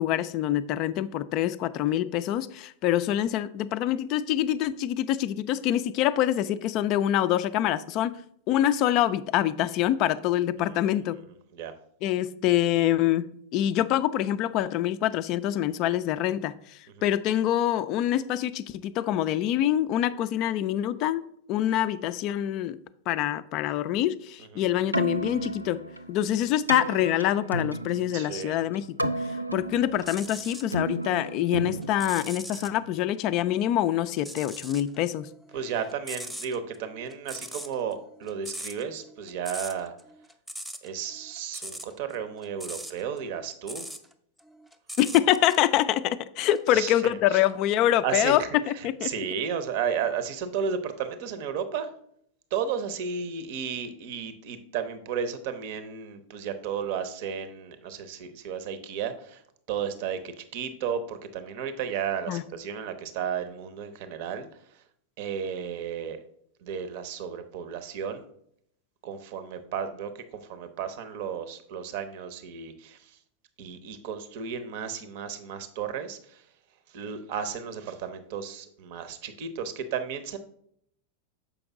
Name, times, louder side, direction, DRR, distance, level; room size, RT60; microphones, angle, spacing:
voice 1, 0.0-8.1 8.5-11.2 12.0-13.3 13.5-16.5 17.0-22.8 23.1-25.8 26.1-29.1 29.5-35.3 45.0-49.1 62.3-62.4, left 12 dB, 40° left, 14 dB, 0.3 m, -25 dB
voice 2, 10.6-11.0 11.5-11.7 17.0-17.1 24.4-24.6 28.1-28.6 35.5-39.9 40.8-43.9 46.7-47.0 47.3-47.4 48.0-51.9 52.5-59.4 59.7-64.5 64.7-64.8 65.2-66.2 66.6-68.2 69.0-73.2 73.6-76.4 76.9-80.4, right 7 dB, 50° right, 11 dB, 0.7 m, -33 dB
Keyboard (musical), 24.8-32.9, right 1 dB, 85° right, 0.3 m, -33 dB
sound 1, 29.9-30.7 31.2-32.8 34.1-35.0 35.2-44.1 44.4-45.7 46.4-46.6, equal, 5° right, 0.6 m, -40 dB
7.0 x 5.1 x 3.6 m, 0.69 s
figure-of-eight pair, 90°, 0 cm